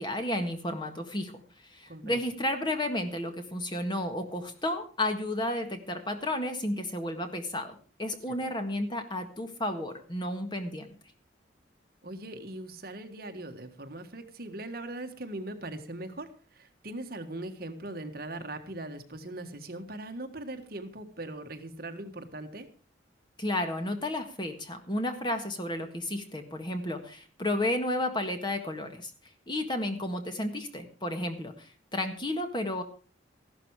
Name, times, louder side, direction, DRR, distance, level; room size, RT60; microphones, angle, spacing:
voice 1, 0.0-10.9 23.4-29.1 29.5-32.8, left 1 dB, 25° left, 6 dB, 1.7 m, -32 dB
voice 2, 1.9-2.2 12.0-22.7, right 1 dB, 50° right, 6 dB, 1.6 m, -40 dB
14.5 x 12.0 x 4.8 m, 0.37 s
head